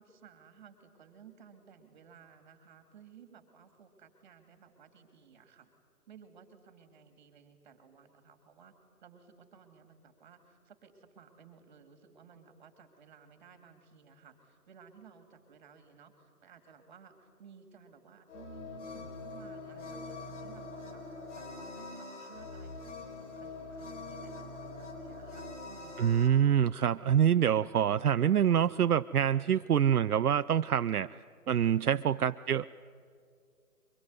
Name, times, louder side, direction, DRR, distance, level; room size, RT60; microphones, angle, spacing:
voice 1, 0.0-5.7 6.1-8.7 9.0-21.0 21.4-22.8 23.2-26.2, right 7 dB, 30° right, 8 dB, 2.5 m, -57 dB
sound 1, 18.3-26.3, left 3 dB, 50° left, 4.1 m, -44 dB
voice 2, 26.0-31.1 31.5-32.7, right 9 dB, 70° right, 12 dB, 0.6 m, -26 dB
24.0 x 21.5 x 9.5 m, 2.3 s
figure-of-eight pair, 155°, 46 cm